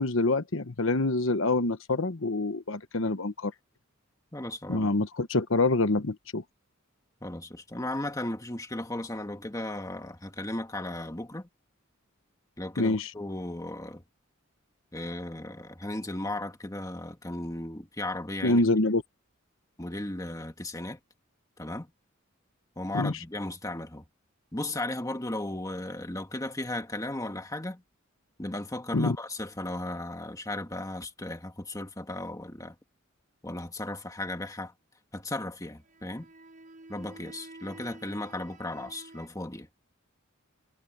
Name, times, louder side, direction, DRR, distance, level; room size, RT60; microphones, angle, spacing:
voice 1, 0.0-3.5 4.7-6.4 12.8-13.1 18.4-19.0 22.9-23.1 28.9-29.2, left 2 dB, 70° left, 1.2 m, -26 dB
voice 2, 4.3-4.9 7.2-11.5 12.6-14.0 14.9-18.6 19.8-21.0 21.6-21.9 22.8-24.0 24.5-27.8 28.4-32.8 33.4-34.7 35.1-36.3 36.9-39.7, left 1 dB, 15° left, 2.0 m, -36 dB
sound 1, 35.8-39.3, right 2 dB, 40° right, 6.3 m, -50 dB
head